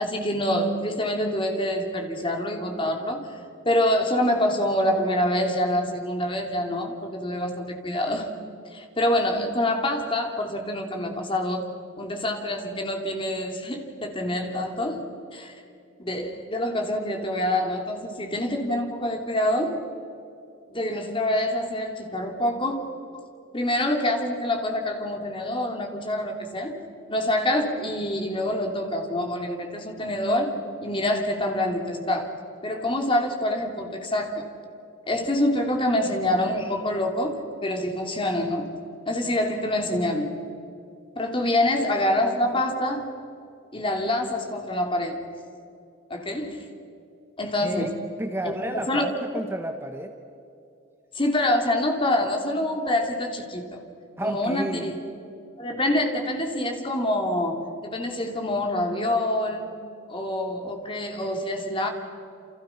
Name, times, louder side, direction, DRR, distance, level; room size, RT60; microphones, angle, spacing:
voice 1, 0.0-3.4 3.6-8.3 8.7-11.7 12.0-15.0 15.3-15.6 16.0-19.8 20.7-22.8 23.1-23.2 23.5-26.8 27.1-32.3 32.6-34.4 35.1-38.7 39.1-40.4 41.2-43.1 43.7-45.2 46.1-46.6 47.4-47.9 48.4-49.1 51.1-53.8 54.2-55.0 55.6-59.8 60.1-61.9, left 1 dB, 25° left, 3 dB, 2.9 m, -26 dB
voice 2, 47.6-50.1 54.2-54.9, right 1 dB, 10° right, 5 dB, 1.3 m, -32 dB
29.0 x 28.0 x 5.9 m, 2.7 s
head